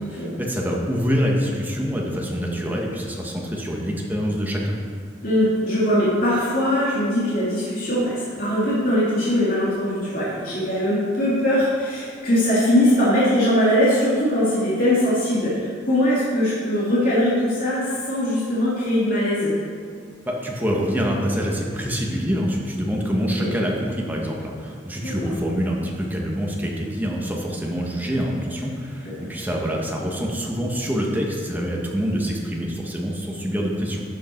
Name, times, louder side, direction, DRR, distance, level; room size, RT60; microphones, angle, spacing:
voice 1, 0.2-4.7 20.3-34.0, equal, 10° right, -2 dB, 1.5 m, -25 dB
voice 2, 5.2-19.5 23.4-23.5 25.0-25.1 29.2-29.3, left 1 dB, 50° left, -9 dB, 2.8 m, -21 dB
12.0 x 8.4 x 4.6 m, 2.1 s
head